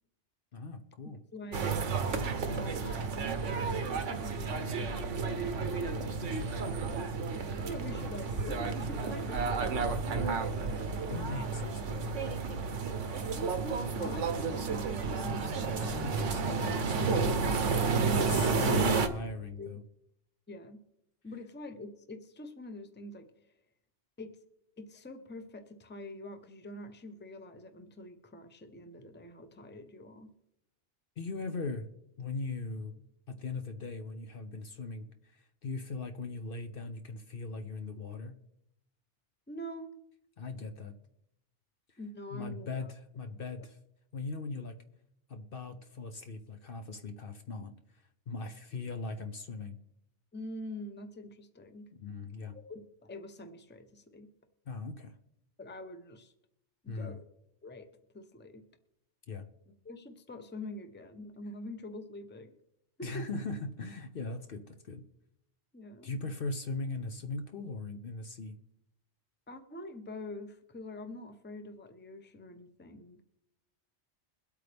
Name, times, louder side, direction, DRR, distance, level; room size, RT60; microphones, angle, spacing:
voice 1, 0.5-1.2 5.7-6.8 10.8-12.7 15.8-17.5 17.9-19.8 31.2-31.9 32.2-32.9 33.3-38.4 40.4-40.9 41.9-42.0 42.3-43.8 44.1-44.8 45.3-47.7 48.3-49.8 52.0-52.5 54.7-55.1 56.9-57.2 59.3-59.4 63.0-65.0 66.0-68.5, left 3 dB, 55° left, 7 dB, 0.9 m, -39 dB
voice 2, 1.1-5.5 7.6-9.9 10.2-10.4 11.0-11.4 14.0-14.9 15.2-15.9 18.1-19.0 19.6-19.7 20.5-20.8 21.2-23.3 24.2-24.3 24.8-30.3 39.5-39.9 42.0-42.9 43.6-43.7 50.3-51.9 52.5-54.3 55.6-56.3 56.8-57.2 57.6-57.9 58.1-58.6 59.8-62.5 63.0-63.3 65.7-66.1 69.5-73.2, left 1 dB, 10° left, 8 dB, 0.7 m, -45 dB
sound 1, 1.5-19.1, right 4 dB, 85° right, 1.3 m, -31 dB
22.5 x 8.4 x 3.4 m, 0.81 s
omnidirectional pair, 1.2 m